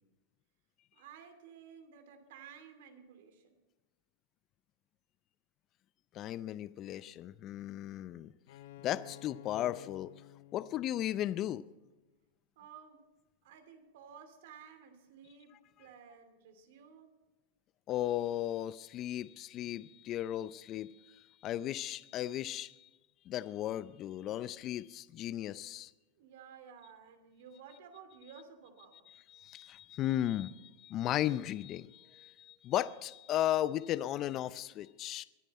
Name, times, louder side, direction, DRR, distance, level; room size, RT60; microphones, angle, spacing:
voice 1, 0.9-3.6 12.6-13.0 13.4-17.2 26.2-29.1, right 7 dB, 70° right, 7 dB, 2.6 m, -54 dB
voice 2, 6.1-8.3 8.8-10.1 10.5-11.7 17.9-22.9 23.3-25.9 29.3-35.2, left 12 dB, 35° left, 16 dB, 0.4 m, -36 dB
Bowed string instrument, 8.5-12.1, left 16 dB, 70° left, 0.7 m, -54 dB
22.5 x 9.1 x 4.2 m, 1.1 s
hypercardioid pair, 125°, 0 cm